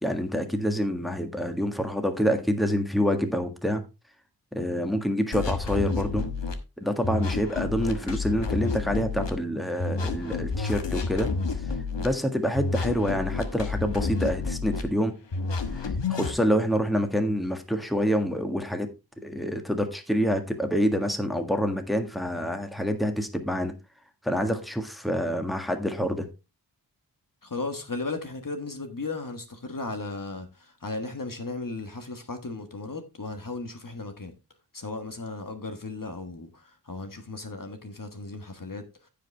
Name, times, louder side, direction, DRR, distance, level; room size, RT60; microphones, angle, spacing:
voice 1, 0.0-3.8 4.5-6.2 6.8-11.3 12.0-15.1 15.7-18.9 19.2-23.7 24.2-26.3, equal, ahead, 1.6 m, -27 dB
sound 1, 5.3-6.5 7.0-9.3 9.8-12.1 12.5-14.8 15.3-16.3, left 4 dB, 85° left, 1.3 m, -30 dB
voice 2, 27.4-34.3 34.7-39.1, left 3 dB, 50° left, 1.5 m, -36 dB
15.0 x 5.2 x 3.3 m
wide cardioid pair, 55°, 42 cm